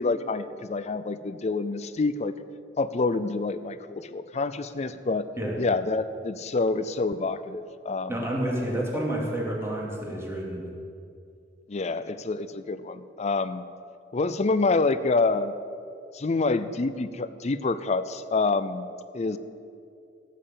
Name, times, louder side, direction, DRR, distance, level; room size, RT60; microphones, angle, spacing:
voice 1, 0.0-2.3 2.8-5.3 5.6-8.2 8.9-9.0 11.7-13.6 14.1-15.5 16.1-18.9 19.1-19.4, left 3 dB, 35° left, 13 dB, 0.5 m, -27 dB
voice 2, 8.1-10.6, right 1 dB, 15° right, -3 dB, 2.5 m, -29 dB
16.5 x 6.7 x 7.5 m, 2.5 s
head